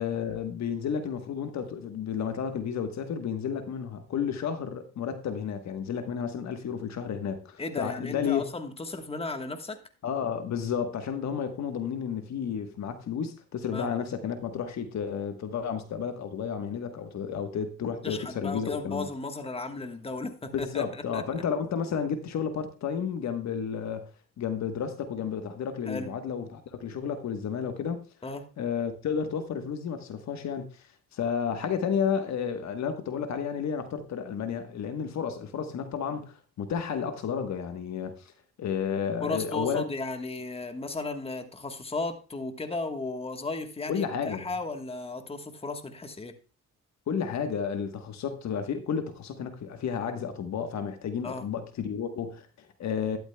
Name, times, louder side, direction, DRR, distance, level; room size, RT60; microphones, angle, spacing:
voice 1, 0.0-8.4 10.0-19.1 20.5-24.1 24.4-28.1 28.6-30.9 31.1-38.3 38.6-39.9 43.9-44.4 47.1-53.2, left 7 dB, 65° left, 1.2 m, -32 dB
voice 2, 7.6-9.8 13.7-13.9 18.0-21.2 25.9-26.1 28.2-28.5 39.2-46.3 51.2-51.4, left 3 dB, 20° left, 1.3 m, -35 dB
12.0 x 12.0 x 2.2 m
cardioid pair, 90°, 30 cm